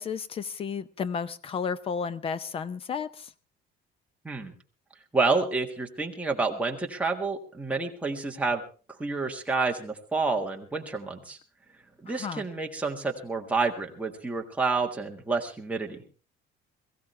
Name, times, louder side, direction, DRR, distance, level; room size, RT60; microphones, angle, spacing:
voice 1, 0.0-3.3 12.1-12.4, left 6 dB, 25° left, 0.7 m, -33 dB
voice 2, 5.1-8.6 9.0-11.4 12.0-16.0, right 3 dB, 5° right, 1.6 m, -29 dB
22.0 x 15.5 x 3.3 m
cardioid pair, 175°, 21 cm